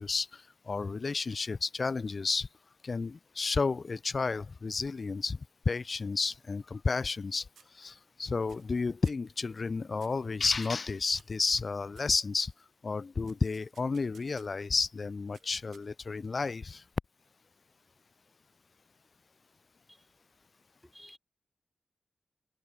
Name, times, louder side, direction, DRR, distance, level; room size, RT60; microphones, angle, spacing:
voice 1, 0.0-2.5 2.8-5.4 5.7-7.5 7.7-12.5 12.8-16.8, left 4 dB, 55° left, 0.8 m, -31 dB
sound 1, 6.3-7.3 7.6-8.1 8.5-8.8 9.0-9.3 10.0-10.3 10.6-12.6 13.3-14.7 15.3-16.2, right 8 dB, 90° right, 6.6 m, -61 dB
voice 2, 20.8-21.2, equal, 5° left, 3.1 m, -54 dB
cardioid pair, 50°, 0 cm